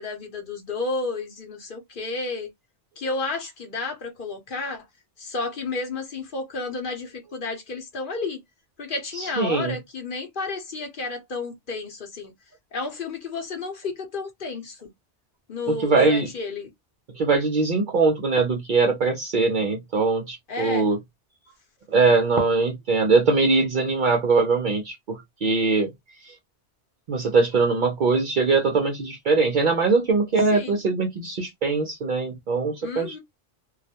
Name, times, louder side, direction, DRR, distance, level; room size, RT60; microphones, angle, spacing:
voice 1, 0.0-2.5 3.0-4.8 5.2-8.4 8.8-12.3 12.7-14.9 15.5-16.7 20.5-20.9 30.5-30.8 32.8-33.2, left 3 dB, 50° left, 0.8 m, -31 dB
voice 2, 9.2-9.8 15.7-16.3 17.1-21.0 21.9-25.9 26.2-26.4 27.1-33.2, right 4 dB, 55° right, 0.5 m, -22 dB
2.3 x 2.1 x 2.7 m
omnidirectional pair, 1.2 m